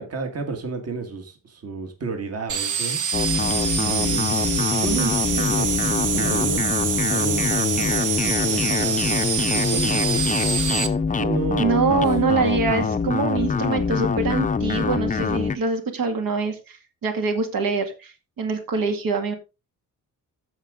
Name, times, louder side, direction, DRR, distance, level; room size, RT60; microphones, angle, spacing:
voice 1, 0.0-3.0 3.7-6.7 7.1-9.1 9.5-10.7 11.2-12.1, right 5 dB, 45° right, 1.9 m, -32 dB
sound 1, 2.5-10.9, right 6 dB, 60° right, 1.6 m, -25 dB
sound 2, 3.1-15.6, left 5 dB, 25° left, 0.5 m, -24 dB
voice 2, 11.6-19.3, right 4 dB, 75° right, 2.2 m, -24 dB
14.5 x 4.9 x 3.7 m
wide cardioid pair, 150°, 34 cm